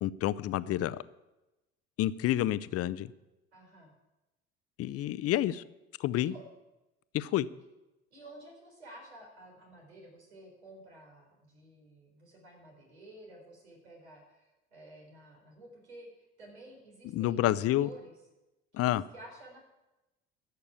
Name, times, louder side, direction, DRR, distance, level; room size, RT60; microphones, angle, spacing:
voice 1, 0.0-1.0 2.0-3.1 4.8-5.6 6.0-6.3 7.1-7.5 17.1-17.9 18.7-19.0, left 13 dB, 45° left, 16 dB, 0.7 m, -29 dB
voice 2, 3.5-3.9 6.2-6.4 8.1-18.1 18.7-19.6, right 1 dB, 85° right, -1 dB, 4.1 m, -52 dB
13.5 x 6.8 x 8.6 m, 1.0 s
hypercardioid pair, 60°, 32 cm